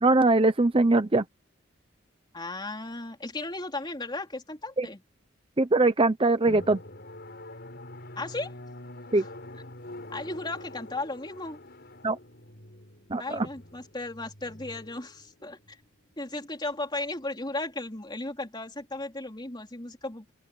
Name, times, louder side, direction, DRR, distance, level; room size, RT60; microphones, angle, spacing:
voice 1, 0.0-1.2 4.8-4.9 5.6-6.8 9.1-9.2 12.0-12.2 13.1-13.5, right 2 dB, 25° right, 0.8 m, -22 dB
voice 2, 2.3-5.0 8.2-8.6 9.1-9.3 10.1-11.6 13.2-15.8 16.2-20.3, left 2 dB, 20° left, 3.7 m, -35 dB
Drum, 6.5-15.7, left 1 dB, 55° left, 6.8 m, -45 dB
open air
head